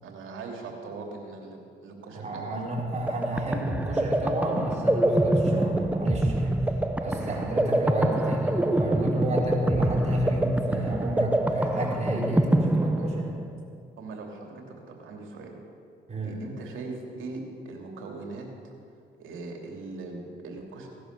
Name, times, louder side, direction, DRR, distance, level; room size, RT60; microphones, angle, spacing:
voice 1, 0.0-2.7 12.9-13.1 14.0-15.6 16.2-18.7 19.2-20.9, right 3 dB, 80° right, 1 dB, 2.8 m, -40 dB
voice 2, 2.1-6.5 7.0-13.1 16.1-16.4, right 1 dB, 35° right, -3 dB, 4.3 m, -31 dB
sound 1, 2.8-13.6, right 1 dB, 5° right, 0.8 m, -25 dB
17.5 x 11.0 x 6.8 m, 2.3 s
cardioid pair, 90°, 20 cm